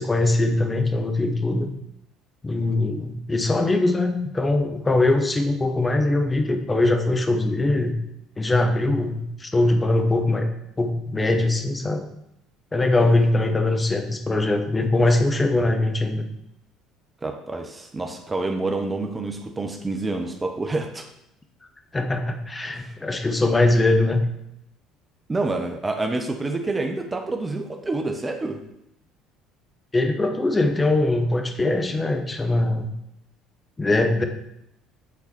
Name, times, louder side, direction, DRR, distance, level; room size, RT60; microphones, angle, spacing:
voice 1, 0.0-1.7 2.4-7.9 8.4-10.5 10.8-12.0 12.7-16.3 21.9-24.2 29.9-32.9 33.8-34.2, left 2 dB, 20° left, 5 dB, 1.1 m, -21 dB
voice 2, 17.2-21.1 22.7-22.9 25.3-28.6, right 2 dB, 20° right, 4 dB, 1.0 m, -28 dB
8.5 x 4.1 x 4.3 m, 0.79 s
hypercardioid pair, 60°, 0 cm